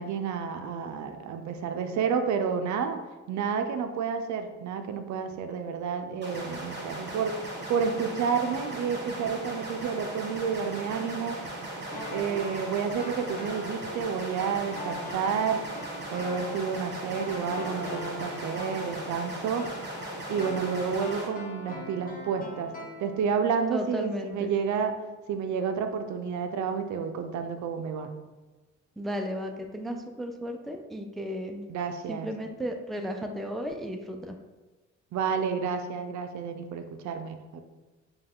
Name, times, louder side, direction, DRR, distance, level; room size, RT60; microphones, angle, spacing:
voice 1, 0.0-3.0 3.3-7.4 7.7-11.4 12.1-15.7 16.1-19.7 20.3-22.7 23.0-24.9 25.3-28.1 31.7-32.3 35.1-37.6, right 6 dB, 70° right, 7 dB, 0.5 m, -30 dB
sound 1, 6.2-21.3, right 1 dB, 35° right, 1.2 m, -38 dB
sound 2, 11.9-23.6 23.8-23.9, left 2 dB, 30° left, 1.0 m, -42 dB
voice 2, 23.7-24.5 29.0-31.7 32.1-34.4, equal, ahead, 4 dB, 0.3 m, -34 dB
5.4 x 2.3 x 3.5 m, 1.2 s
cardioid pair, 90°, 30 cm